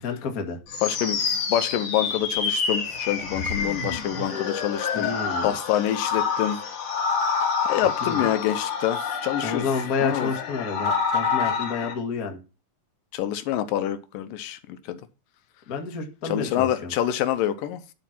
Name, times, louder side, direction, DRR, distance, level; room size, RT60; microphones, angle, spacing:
voice 1, 0.0-0.6 4.9-5.5 8.0-8.3 9.4-12.4 15.7-16.9, left 5 dB, 40° left, 1.3 m, -29 dB
sound 1, 0.7-11.9, left 5 dB, 65° left, 3.8 m, -27 dB
voice 2, 0.8-1.2 1.5-5.1 5.4-6.6 7.7-9.7 10.0-10.3 13.1-15.0 16.2-17.8, left 11 dB, 80° left, 2.4 m, -26 dB
11.5 x 4.4 x 5.8 m
omnidirectional pair, 3.9 m